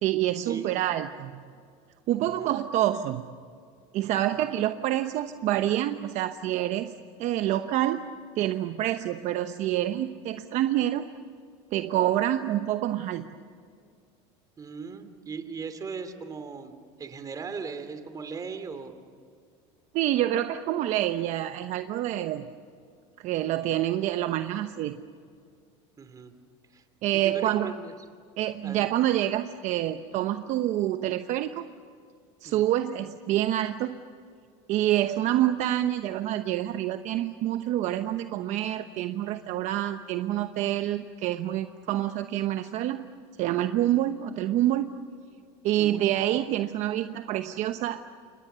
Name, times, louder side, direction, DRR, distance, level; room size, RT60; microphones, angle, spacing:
voice 1, 0.0-1.4 2.1-3.3 3.9-6.9 7.2-8.1 8.4-11.1 11.7-13.2 19.9-22.5 23.2-25.0 27.0-27.7 28.4-31.6 32.4-34.0 34.7-43.1 43.4-44.9 45.6-48.0, right 13 dB, 55° right, 8 dB, 1.0 m, -27 dB
voice 2, 14.6-19.0 26.0-26.3 26.7-26.8 27.1-27.9 28.6-28.9 32.4-32.7 45.8-46.0, right 5 dB, 25° right, 9 dB, 2.7 m, -38 dB
29.0 x 25.5 x 6.8 m, 2.2 s
supercardioid pair, 125°, 15 cm